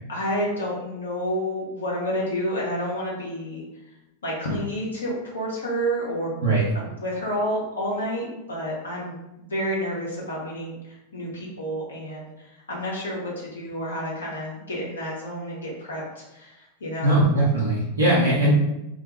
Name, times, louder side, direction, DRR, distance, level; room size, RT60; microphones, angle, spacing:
voice 1, 0.1-3.6 4.2-6.3 6.7-17.2, equal, 70° left, -5 dB, 0.6 m, -30 dB
voice 2, 17.0-18.5, right 1 dB, 70° right, -7 dB, 0.7 m, -20 dB
2.2 x 2.1 x 2.9 m, 0.92 s
figure-of-eight pair, 90°, 0 cm